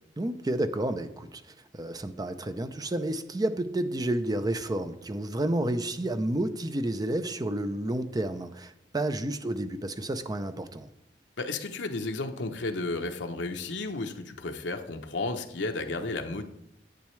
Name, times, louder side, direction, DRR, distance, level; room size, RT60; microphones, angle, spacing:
voice 1, 0.2-1.4 1.7-10.9, right 1 dB, 20° right, 10 dB, 0.5 m, -30 dB
voice 2, 11.4-16.4, left 3 dB, 70° left, 4 dB, 0.8 m, -33 dB
10.5 x 8.6 x 3.2 m, 0.79 s
head